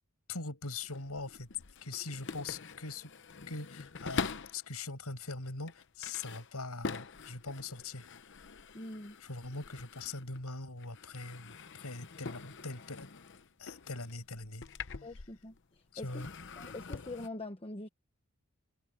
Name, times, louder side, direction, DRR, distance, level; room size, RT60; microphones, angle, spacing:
voice 1, 0.3-1.5 1.8-3.1 3.5-8.1 9.2-13.1 13.6-14.6 15.9-16.3, left 3 dB, 90° left, 5.7 m, -42 dB
sound 1, 0.7-4.7 5.3-10.5 10.8-15.6 16.0-17.3, left 5 dB, 55° left, 0.8 m, -44 dB
voice 2, 8.7-9.2 15.0-15.5 16.0-16.3 16.6-17.9, left 2 dB, 25° left, 1.1 m, -43 dB
head